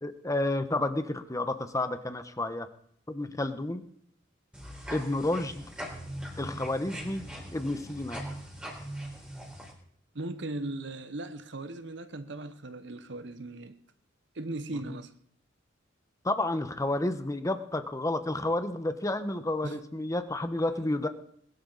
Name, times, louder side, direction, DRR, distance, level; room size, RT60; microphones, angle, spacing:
voice 1, 0.0-2.7 3.1-3.8 4.9-5.6 6.4-7.3 7.5-8.2 14.9-15.0 16.2-21.1, left 2 dB, 15° left, 1.0 m, -30 dB
sound 1, 4.5-9.7, equal, 5° right, 3.9 m, -41 dB
voice 2, 10.1-13.8 14.3-15.1 19.6-19.8, right 2 dB, 65° right, 1.0 m, -38 dB
20.5 x 12.0 x 4.0 m
head